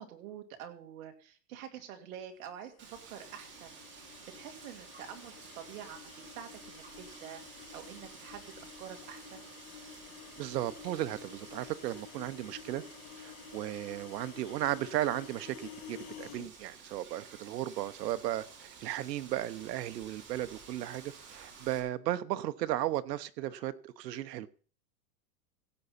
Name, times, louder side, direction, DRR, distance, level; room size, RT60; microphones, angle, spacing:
voice 1, 0.0-9.4, right 9 dB, 55° right, 5 dB, 2.3 m, -47 dB
sound 1, 2.6-16.5, left 8 dB, 60° left, 2.0 m, -51 dB
Wind, 2.8-21.8, right 5 dB, 20° right, 2.5 m, -53 dB
voice 2, 10.4-12.8 13.2-24.5, right 13 dB, 80° right, 13 dB, 1.0 m, -35 dB
16.5 x 8.0 x 4.2 m, 0.40 s
supercardioid pair, 160°, 49 cm